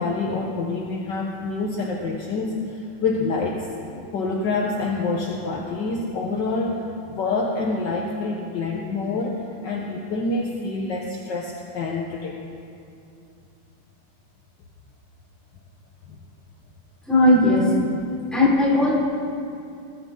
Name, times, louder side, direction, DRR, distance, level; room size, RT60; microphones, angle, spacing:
voice 1, 0.0-3.7 4.1-12.4 16.1-16.2 17.1-17.4 18.3-18.5, left 3 dB, 60° left, -1 dB, 1.7 m, -25 dB
voice 2, 17.1-17.6 18.3-18.9, equal, ahead, -7 dB, 4.7 m, -22 dB
21.5 x 14.5 x 3.9 m, 2.5 s
omnidirectional pair, 2.4 m